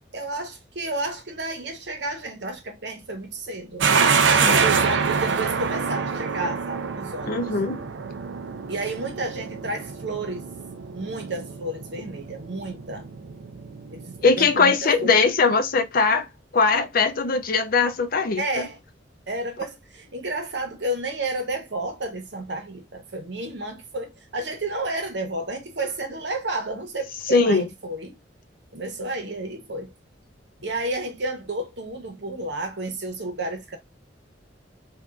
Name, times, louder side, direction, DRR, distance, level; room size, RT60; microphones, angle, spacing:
voice 1, 0.1-3.9 4.4-7.5 8.7-10.5 10.9-13.1 13.9-15.2 18.4-18.8 19.3-28.2 28.7-29.9 30.6-33.8, right 2 dB, 70° right, 1.0 m, -31 dB
sound 1, 3.8-14.6, right 5 dB, 85° right, 0.5 m, -26 dB
voice 2, 7.3-7.8 14.2-16.3 16.5-18.7 27.3-27.7, left 4 dB, 55° left, 0.6 m, -20 dB
3.4 x 2.6 x 2.3 m
head